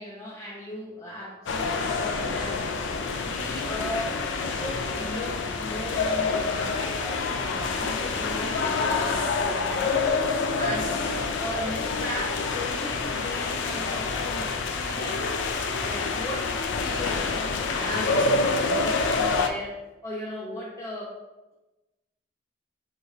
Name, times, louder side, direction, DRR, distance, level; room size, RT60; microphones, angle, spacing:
voice 1, 0.0-2.7 3.1-14.5 14.7-15.3 15.8-21.2, left 1 dB, 20° left, -8 dB, 0.7 m, -37 dB
sound 1, 1.5-19.5, left 4 dB, 80° left, 0.4 m, -27 dB
6.3 x 2.5 x 3.2 m, 1.1 s
head